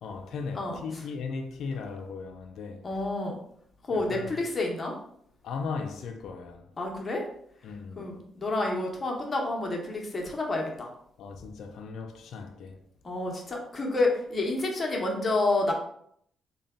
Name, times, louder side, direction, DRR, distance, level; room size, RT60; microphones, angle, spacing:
voice 1, 0.0-2.9 3.9-4.4 5.4-6.7 7.6-8.1 11.2-12.8, left 5 dB, 70° left, 0.4 m, -37 dB
voice 2, 0.5-1.0 2.8-3.4 3.8-5.0 6.8-7.2 8.0-10.9 13.0-15.7, left 2 dB, 30° left, 0.9 m, -29 dB
3.8 x 2.2 x 3.6 m
cardioid pair, 90°, 0 cm